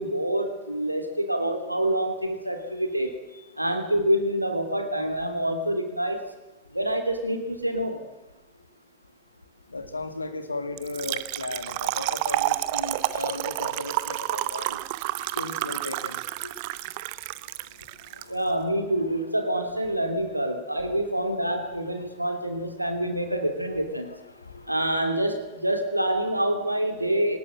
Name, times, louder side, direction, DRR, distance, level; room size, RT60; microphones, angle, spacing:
voice 1, 0.0-3.1 3.6-6.2 6.7-8.0 18.3-24.1 24.7-27.4, right 1 dB, 85° right, 6 dB, 2.8 m, -26 dB
voice 2, 9.7-14.8 15.4-16.2 18.0-18.5 19.9-20.0 20.8-20.9 21.8-21.9 22.2-22.4 24.0-24.7, left 3 dB, 80° left, 8 dB, 2.4 m, -36 dB
Trickle dribble / Fill (with liquid), 10.8-18.2, right 18 dB, 45° right, 0.9 m, -30 dB
22.0 x 19.5 x 7.6 m, 1.1 s
figure-of-eight pair, 90°, 0 cm